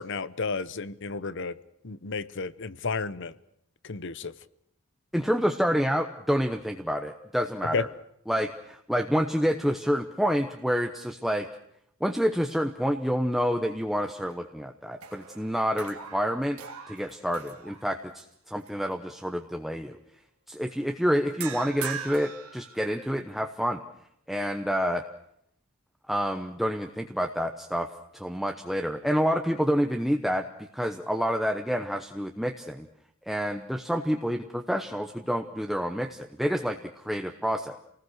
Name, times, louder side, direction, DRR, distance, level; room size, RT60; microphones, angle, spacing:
voice 1, 0.0-1.6 1.8-3.3 3.8-4.3 7.7-7.8, left 4 dB, 60° left, 0.9 m, -32 dB
voice 2, 5.1-7.9 8.3-11.5 12.0-16.6 16.9-20.0 20.5-23.8 24.3-25.0 26.1-27.9 28.1-30.5 30.7-32.9 33.3-37.8, equal, ahead, 1.0 m, -28 dB
sound 1, 13.9-14.6 14.9-18.2 18.7-18.9 21.4-23.3, right 8 dB, 85° right, 2.4 m, -41 dB
28.5 x 19.0 x 6.5 m
head